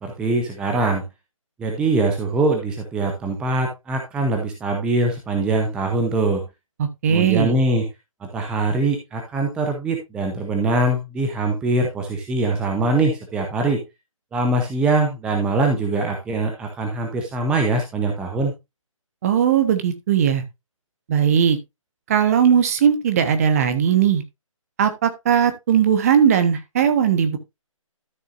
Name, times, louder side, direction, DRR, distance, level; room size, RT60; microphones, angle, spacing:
voice 1, 0.0-1.0 1.6-6.4 7.1-7.9 8.2-13.8 14.3-18.5, right 2 dB, 5° right, 0.7 m, -22 dB
voice 2, 6.8-7.5 19.2-20.4 21.1-21.6 22.1-24.2 24.8-27.4, right 8 dB, 25° right, 1.1 m, -18 dB
13.0 x 6.3 x 2.6 m
figure-of-eight pair, 150°, 17 cm